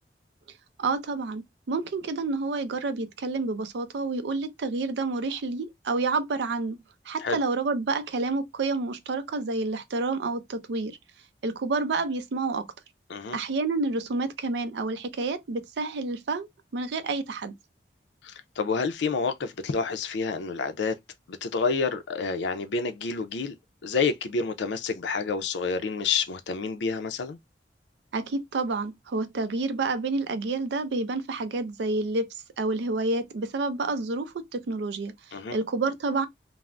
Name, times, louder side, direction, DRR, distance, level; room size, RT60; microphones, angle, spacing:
voice 1, 0.8-6.8 7.1-11.0 11.4-12.7 13.3-17.5 28.1-32.3 32.6-36.3, right 3 dB, 80° right, 0.4 m, -29 dB
voice 2, 18.2-20.9 21.3-23.5 23.8-27.4 35.3-35.6, left 5 dB, 90° left, 0.4 m, -28 dB
2.4 x 2.0 x 3.2 m
head